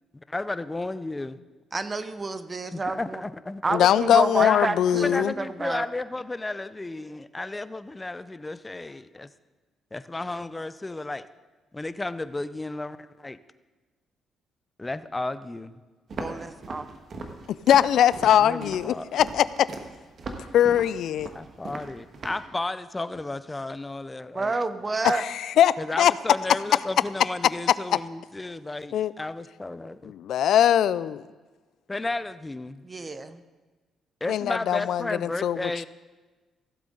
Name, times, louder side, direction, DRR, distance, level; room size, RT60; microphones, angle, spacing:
voice 1, 0.3-1.4 2.7-3.6 4.4-4.7 5.0-9.3 9.9-11.3 11.7-13.4 14.8-15.8 18.4-19.1 21.3-24.5 25.8-30.1 31.9-32.8 34.2-35.9, left 2 dB, 15° left, 14 dB, 0.5 m, -33 dB
voice 2, 1.7-3.2 3.6-5.8 16.2-16.9 24.3-25.2 32.8-33.4, right 3 dB, 30° right, 12 dB, 0.7 m, -29 dB
voice 3, 3.7-5.3 17.7-19.7 20.5-21.3 25.1-26.1 28.9-29.1 30.0-31.2 34.3-35.6, left 10 dB, 75° left, 18 dB, 0.3 m, -21 dB
Walk footsteps, 16.1-22.5, right 3 dB, 50° right, 1.4 m, -39 dB
15.5 x 7.8 x 3.8 m, 1.3 s
cardioid pair, 90°, 0 cm